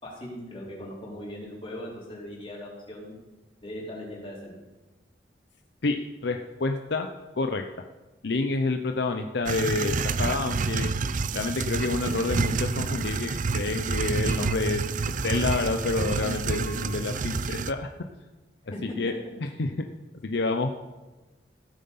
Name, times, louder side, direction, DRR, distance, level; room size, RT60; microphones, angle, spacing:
voice 1, 0.0-3.1 3.6-4.5 18.7-18.8, left 1 dB, 30° left, -4 dB, 4.2 m, -39 dB
voice 2, 5.8-7.1 7.3-7.8 8.2-10.9 11.3-14.8 15.2-17.9 18.8-19.1 19.6-19.7 20.2-20.7, left 3 dB, 65° left, 5 dB, 0.7 m, -28 dB
sound 1, 9.5-17.7, right 4 dB, 45° right, 0.5 m, -28 dB
16.0 x 7.6 x 5.6 m, 1.2 s
head